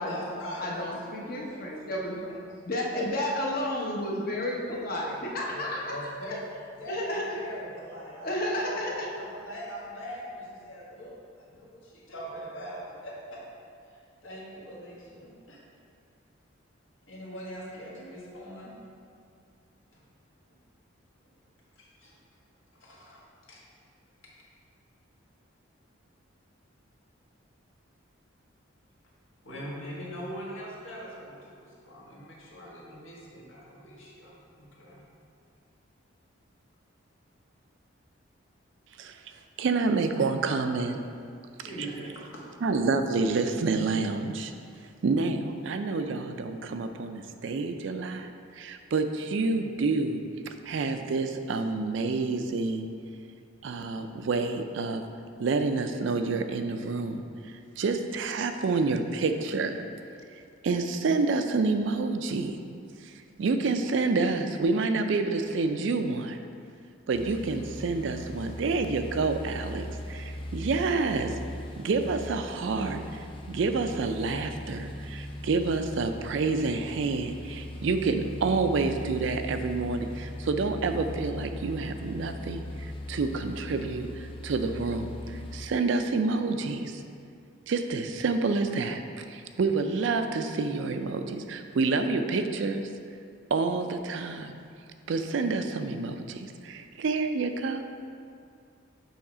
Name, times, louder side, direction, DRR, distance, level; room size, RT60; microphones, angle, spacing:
voice 1, 0.0-1.0 1.3-2.4 5.5-6.4 6.7-13.4 13.8-15.6 17.1-18.7 21.7-22.2 22.8-23.2 23.5-23.6 29.4-35.0 41.6-42.1, equal, 75° left, -5 dB, 1.5 m, -42 dB
voice 2, 0.6-2.1 2.6-5.8 6.9-7.2 8.2-9.1, left 1 dB, 45° left, -3 dB, 0.9 m, -31 dB
voice 3, 39.6-41.0 42.6-44.5 45.0-50.2 50.7-52.9 53.6-55.0 55.4-57.3 57.8-59.8 60.6-62.6 63.0-63.1 63.4-66.4 67.1-71.3 71.8-87.0 87.7-92.9 93.5-94.6 95.1-97.8, right 3 dB, 65° right, 7 dB, 0.4 m, -28 dB
sound 1, 67.1-85.7, left 1 dB, 25° left, 0.4 m, -39 dB
7.1 x 3.2 x 4.9 m, 2.3 s
head